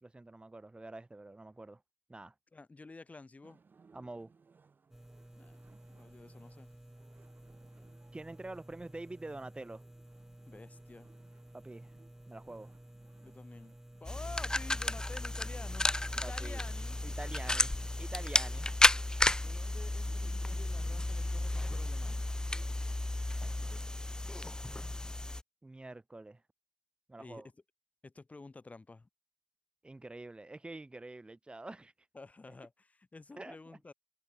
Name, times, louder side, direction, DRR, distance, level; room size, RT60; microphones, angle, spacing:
voice 1, 0.0-1.8 2.1-2.3 3.9-4.3 8.1-9.8 11.5-11.9 12.3-12.7 16.2-16.6 17.0-18.7 25.6-26.4 27.1-27.5 29.8-31.9 33.4-33.6, right 2 dB, 30° right, 1.7 m, -46 dB
voice 2, 2.5-3.6 5.4-5.6 5.9-6.7 10.5-11.1 13.2-17.0 19.4-22.2 23.7-24.1 27.2-27.4 28.0-29.1 32.1-33.9, left 3 dB, 50° left, 3.0 m, -51 dB
sound 1, 3.4-23.0, right 5 dB, 75° right, 6.5 m, -65 dB
neon sign stereo closeup, 4.9-18.1, right 1 dB, 15° right, 2.2 m, -54 dB
sound 2, 14.0-25.4, left 1 dB, 20° left, 0.8 m, -32 dB
cardioid pair, 50°, 3 cm